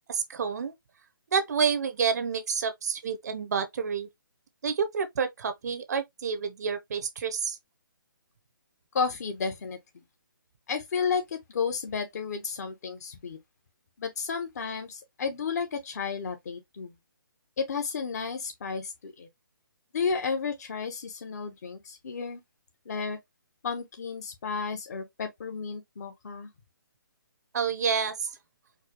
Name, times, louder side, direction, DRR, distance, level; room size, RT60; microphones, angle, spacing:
voice 1, 0.1-0.7 1.3-4.1 4.6-7.6 27.5-28.4, right 6 dB, 50° right, 0.7 m, -29 dB
voice 2, 8.9-9.8 10.7-13.4 14.0-16.9 17.6-19.3 19.9-22.4 22.9-23.2 23.6-26.5, left 5 dB, 45° left, 1.1 m, -32 dB
4.6 x 2.2 x 3.0 m
hypercardioid pair, 155°, 12 cm